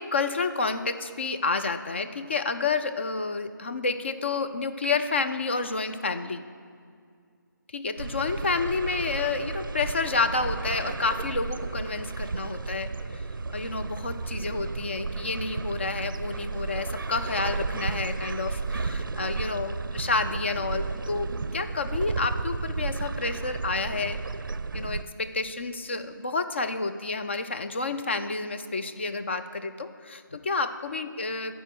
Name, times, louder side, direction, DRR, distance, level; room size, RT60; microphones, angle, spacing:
voice 1, 0.0-6.4 7.7-13.3 13.5-24.2 24.7-31.6, left 4 dB, 35° left, 8 dB, 0.4 m, -30 dB
sound 1, 8.0-25.0, right 4 dB, 70° right, 0.4 m, -33 dB
11.5 x 4.5 x 7.6 m, 2.2 s
figure-of-eight pair, 165°, 11 cm